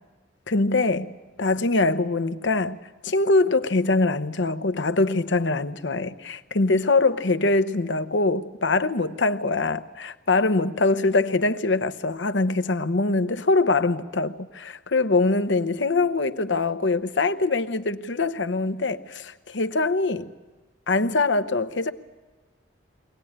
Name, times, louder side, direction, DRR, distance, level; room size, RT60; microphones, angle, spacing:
voice 1, 0.5-2.8 3.0-20.3 20.9-21.9, left 3 dB, 80° left, 0.9 m, -23 dB
23.5 x 18.0 x 8.8 m
head